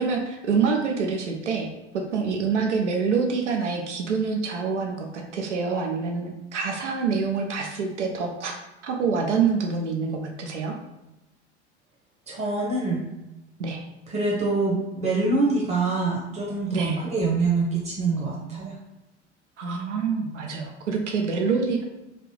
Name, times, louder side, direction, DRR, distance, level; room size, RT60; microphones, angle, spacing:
voice 1, 0.0-8.5 8.8-10.8 13.6-13.8 16.7-17.0 19.6-21.8, right 5 dB, 85° right, 2 dB, 0.5 m, -26 dB
voice 2, 12.3-13.0 14.1-18.7, right 3 dB, 40° right, -3 dB, 1.0 m, -25 dB
3.2 x 2.5 x 3.1 m, 0.97 s
figure-of-eight pair, 70°, 35 cm